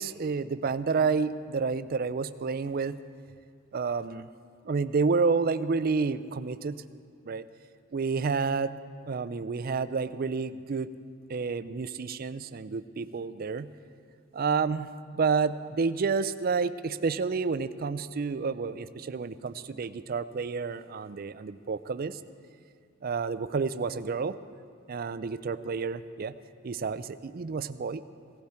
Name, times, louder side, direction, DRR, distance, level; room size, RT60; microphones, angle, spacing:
voice 1, 0.0-3.0 3.7-4.3 4.6-6.8 7.2-7.4 7.9-8.7 9.1-10.9 11.3-13.7 14.3-22.2 23.0-24.4 24.9-26.4 26.6-28.0, right 5 dB, 45° right, 13 dB, 0.4 m, -29 dB
17.0 x 15.5 x 4.3 m, 2.1 s
head